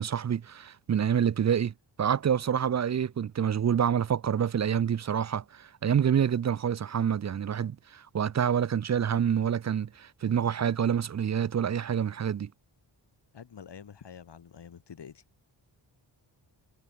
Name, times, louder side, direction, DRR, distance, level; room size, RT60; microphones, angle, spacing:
voice 1, 0.0-12.5, right 8 dB, 40° right, 0.5 m, -27 dB
voice 2, 13.3-15.2, left 7 dB, 65° left, 3.1 m, -47 dB
wide cardioid pair, 140°, 45 cm